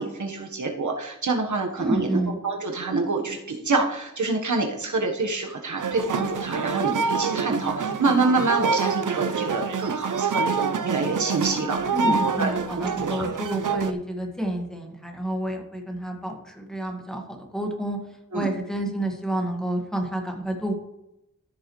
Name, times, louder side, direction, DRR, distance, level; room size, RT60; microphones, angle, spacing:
voice 1, 0.0-13.3 18.3-18.5, right 3 dB, 70° right, 3 dB, 1.3 m, -27 dB
voice 2, 1.8-2.4 11.9-18.0 18.3-20.7, right 1 dB, ahead, 1 dB, 1.7 m, -29 dB
sound 1, 5.8-13.9, right 5 dB, 90° right, 0.7 m, -27 dB
14.0 x 6.3 x 3.2 m, 0.87 s
wide cardioid pair, 75°, 30 cm